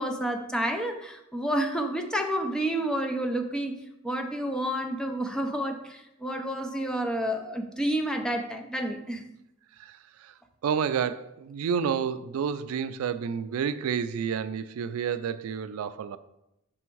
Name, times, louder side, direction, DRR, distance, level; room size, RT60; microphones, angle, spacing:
voice 1, 0.0-3.8 4.0-9.2, right 1 dB, 5° left, 3 dB, 0.5 m, -29 dB
voice 2, 10.6-16.2, right 7 dB, 85° right, 13 dB, 0.3 m, -30 dB
6.1 x 3.5 x 4.5 m, 0.87 s
head